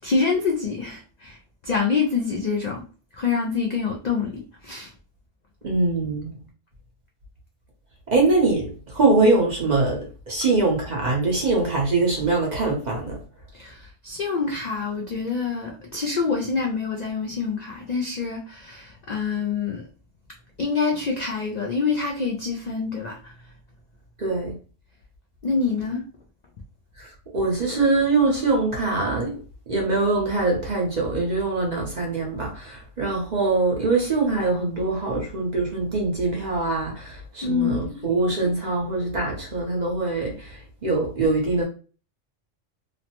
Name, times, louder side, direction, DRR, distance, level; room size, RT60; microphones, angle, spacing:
voice 1, 0.0-2.8 3.1-4.9 13.5-19.9 20.6-23.5 25.4-26.0 37.4-38.2, left 5 dB, 75° left, 0.4 m, -26 dB
voice 2, 5.6-6.4 8.1-13.2 24.2-24.5 27.0-27.1 27.3-29.4 29.7-41.6, right 3 dB, 45° right, 0.7 m, -23 dB
3.0 x 2.0 x 2.8 m
omnidirectional pair, 1.3 m